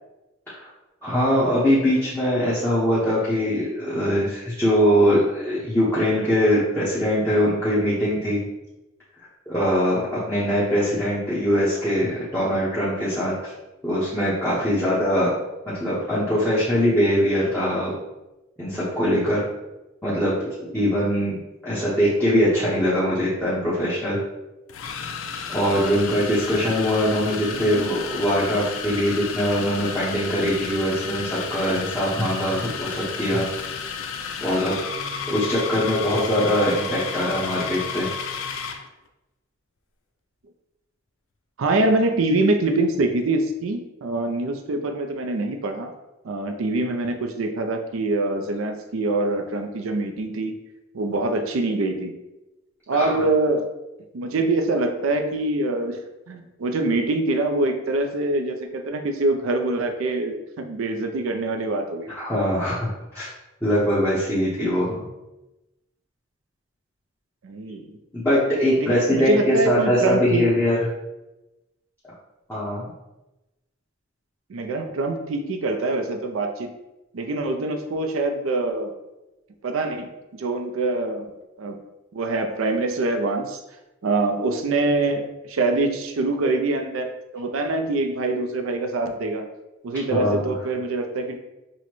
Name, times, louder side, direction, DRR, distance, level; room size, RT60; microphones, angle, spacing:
voice 1, 1.0-8.4 9.5-13.5 13.8-15.3 15.8-17.9 18.6-19.4 20.0-24.2 25.5-33.5 34.4-34.7 35.3-38.1 52.9-53.1 62.1-63.3 63.6-65.0 68.1-70.8 72.5-72.9 90.1-90.4, equal, 10° left, -10 dB, 0.8 m, -22 dB
sound 1, 23.5-23.6 24.7-38.9, left 6 dB, 90° left, 0.4 m, -32 dB
voice 2, 27.5-28.0 41.6-45.9 46.2-50.6 50.9-52.1 52.9-53.7 54.1-56.0 56.3-62.1 67.4-68.0 68.8-70.5 74.5-76.7 77.1-78.9 79.6-81.3 81.6-81.8 82.1-83.6 84.0-89.5 89.8-91.4, right 2 dB, 90° right, 6 dB, 0.4 m, -24 dB
6.1 x 2.1 x 3.0 m, 0.99 s
head